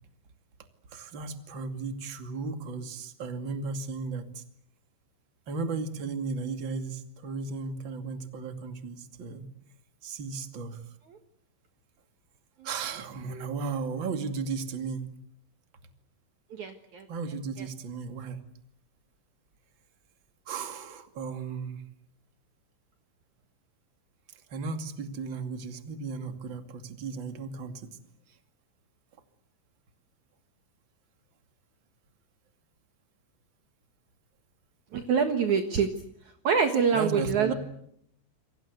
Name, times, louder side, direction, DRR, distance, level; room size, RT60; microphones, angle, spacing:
voice 1, 0.9-4.4 5.5-9.5 10.0-10.8 12.6-15.1 17.1-18.4 20.5-21.8 24.3-27.9 36.9-37.5, right 4 dB, 40° right, 7 dB, 1.8 m, -35 dB
voice 2, 16.5-17.0 34.9-35.9 36.4-37.5, right 6 dB, 75° right, 6 dB, 1.7 m, -25 dB
29.0 x 23.5 x 8.1 m, 0.72 s
omnidirectional pair, 6.0 m